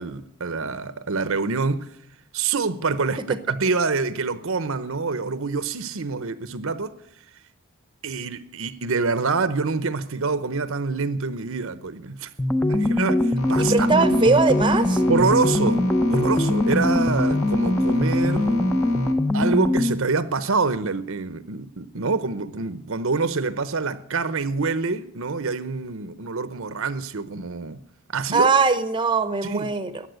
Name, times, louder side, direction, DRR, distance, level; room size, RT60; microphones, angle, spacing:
voice 1, 0.0-1.9 2.3-6.9 8.0-12.3 12.7-14.2 15.1-18.7 19.3-27.8 28.1-28.5 29.4-29.7, right 4 dB, 65° right, 0.9 m, -26 dB
sound 1, 12.4-20.0, left 1 dB, 5° left, 0.7 m, -21 dB
sound 2, 13.4-19.1, right 1 dB, 65° left, 2.2 m, -35 dB
voice 2, 13.6-15.0 28.3-30.0, right 4 dB, 20° right, 0.9 m, -21 dB
14.5 x 9.7 x 8.2 m
head